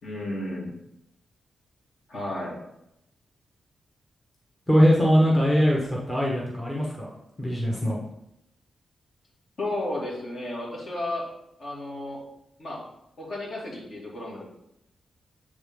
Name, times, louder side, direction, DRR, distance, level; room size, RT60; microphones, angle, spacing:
voice 1, 0.0-0.7 2.1-2.5 9.6-11.3 11.6-12.2 12.6-12.8 13.2-14.4, left 1 dB, 55° left, -4 dB, 2.2 m, -33 dB
voice 2, 4.7-7.1 7.4-8.0, equal, 15° left, -3 dB, 1.0 m, -21 dB
7.8 x 3.7 x 3.6 m, 0.83 s
wide cardioid pair, 115°, 0 cm